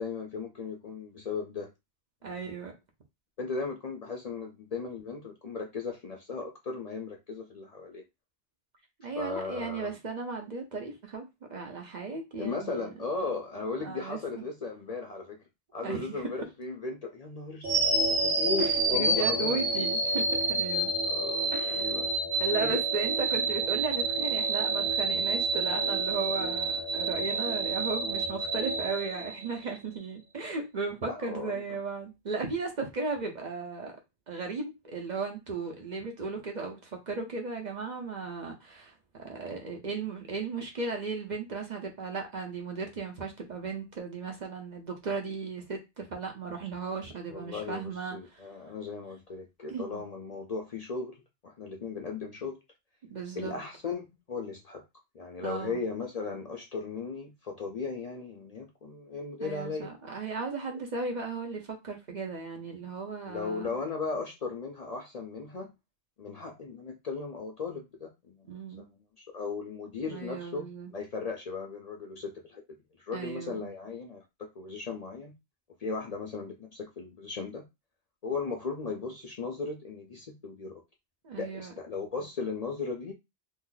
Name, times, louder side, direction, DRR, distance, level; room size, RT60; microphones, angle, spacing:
voice 1, 0.0-1.7 2.2-2.5 3.4-8.0 9.2-10.0 12.4-15.4 15.7-17.8 18.2-19.9 21.0-22.1 22.6-22.8 31.1-31.6 47.3-51.2 51.4-52.6 53.4-54.8 55.1-59.9 63.3-65.7 66.2-72.6 73.0-75.3 75.8-77.6 78.2-80.7 81.4-83.1, left 4 dB, 45° left, 0.6 m, -37 dB
voice 2, 2.2-2.7 9.0-12.9 13.8-14.4 15.8-16.1 18.6-20.9 21.5-22.1 22.4-34.0 34.3-48.4 49.7-50.0 53.1-53.6 55.4-55.8 59.4-63.8 68.5-68.8 70.0-70.9 73.1-73.7 81.2-81.7, right 4 dB, 45° right, 0.8 m, -36 dB
sound 1, 17.6-29.8, right 3 dB, 75° right, 1.3 m, -28 dB
2.8 x 2.5 x 3.7 m
omnidirectional pair, 1.0 m